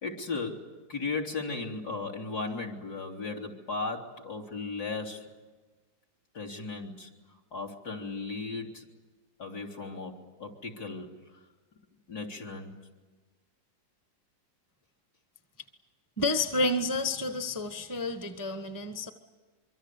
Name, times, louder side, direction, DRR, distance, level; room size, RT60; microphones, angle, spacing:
voice 1, 0.0-5.2 6.3-7.1 7.5-8.8 9.4-11.1 12.1-12.7, left 3 dB, 55° left, 0 dB, 3.7 m, -36 dB
voice 2, 16.2-19.1, left 2 dB, 10° left, 7 dB, 1.2 m, -30 dB
25.0 x 24.5 x 8.4 m, 1.3 s
omnidirectional pair, 2.0 m